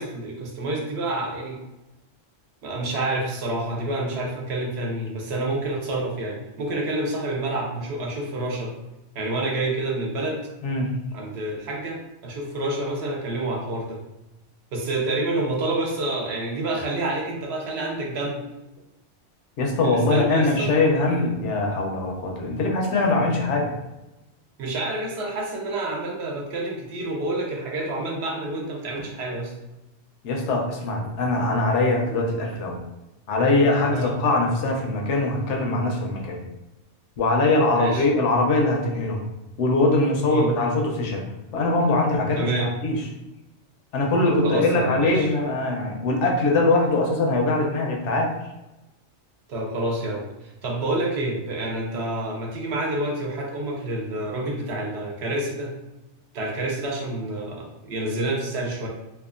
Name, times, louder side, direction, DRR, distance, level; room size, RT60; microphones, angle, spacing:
voice 1, 0.0-1.6 2.6-8.7 9.1-10.4 11.1-12.0 12.2-14.0 14.7-18.4 19.8-20.7 24.6-29.5 33.9-34.2 37.7-38.1 40.3-40.5 42.4-42.7 44.2-45.3 49.5-55.7 56.3-58.9, right 2 dB, 65° right, -1 dB, 0.8 m, -28 dB
voice 2, 10.6-10.9 19.6-23.7 30.2-32.8 33.3-36.4 37.2-39.2 39.6-41.2 41.5-43.0 43.9-48.3, left 2 dB, 80° left, 1 dB, 0.9 m, -22 dB
2.7 x 2.3 x 2.4 m, 1.0 s
omnidirectional pair, 1.2 m